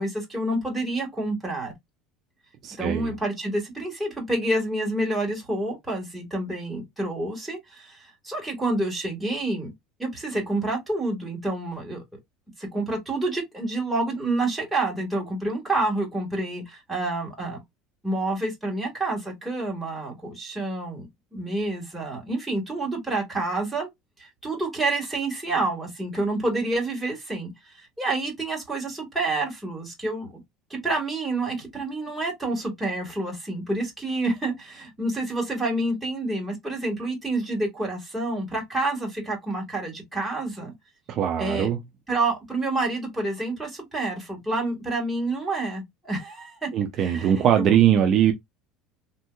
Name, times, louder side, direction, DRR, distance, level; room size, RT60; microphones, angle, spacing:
voice 1, 0.0-1.7 2.8-9.7 10.0-12.0 12.6-17.6 18.0-23.9 24.2-27.5 27.8-30.3 30.7-40.7 41.4-41.7 42.1-46.7 47.0-47.7, right 2 dB, 5° right, 1.6 m, -28 dB
voice 2, 2.6-3.1 41.1-41.8 46.7-48.3, right 9 dB, 45° right, 0.5 m, -21 dB
3.5 x 2.7 x 2.2 m
cardioid pair, 135°, 0 cm